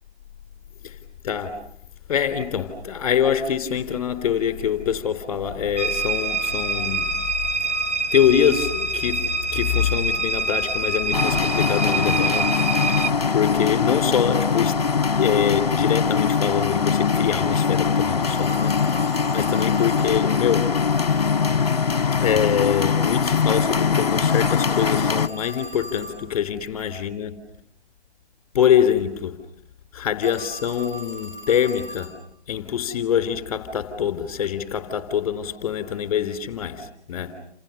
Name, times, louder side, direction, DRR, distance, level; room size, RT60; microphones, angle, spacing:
voice 1, 1.2-1.6 2.1-7.1 7.6-7.7 8.1-12.5 12.9-13.0 13.3-14.8 15.1-20.7 22.2-27.4 28.5-29.4 29.9-32.1 32.5-37.3, left 9 dB, 15° left, 3.0 m, -24 dB
sound 1, 5.8-13.1, right 3 dB, 85° right, 1.6 m, -25 dB
sound 2, 11.1-25.3, left 6 dB, 35° left, 1.1 m, -22 dB
Telephone, 18.2-20.2 24.2-26.2 30.2-32.2, right 1 dB, 15° right, 5.1 m, -39 dB
29.0 x 27.5 x 7.0 m
figure-of-eight pair, 150°, 34 cm